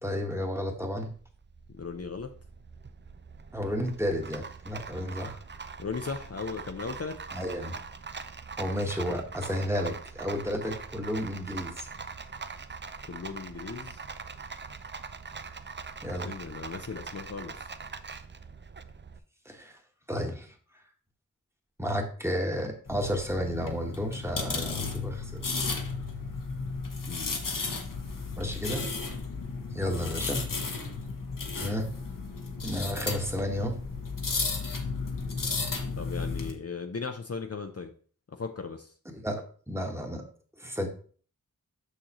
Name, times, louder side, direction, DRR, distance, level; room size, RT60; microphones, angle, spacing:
voice 1, 0.0-1.1 3.5-5.4 7.3-7.7 8.6-11.9 16.0-16.3 19.4-19.8 20.1-20.5 21.8-25.4 28.4-28.9 29.7-30.5 31.5-31.9 32.6-33.8 39.1-40.2 40.6-40.9, equal, 10° right, 2 dB, 1.3 m, -32 dB
Rattle, 0.6-19.2, right 5 dB, 35° right, 0.5 m, -42 dB
voice 2, 1.7-2.3 5.8-7.1 13.1-14.0 16.2-17.7 27.1-27.4 36.0-37.9 38.3-38.9, left 5 dB, 45° left, 5 dB, 0.6 m, -37 dB
sound 1, 22.9-36.5, left 4 dB, 70° left, 1.0 m, -34 dB
6.4 x 6.3 x 3.0 m, 0.43 s
wide cardioid pair, 50°, 33 cm